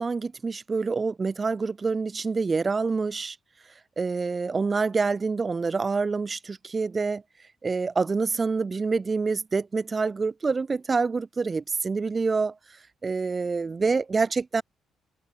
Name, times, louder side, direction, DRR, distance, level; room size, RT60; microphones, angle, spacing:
voice 1, 0.0-3.4 4.0-7.2 7.6-12.6 13.0-14.6, right 4 dB, 30° right, 6.1 m, -26 dB
cardioid pair, 90°, 0 cm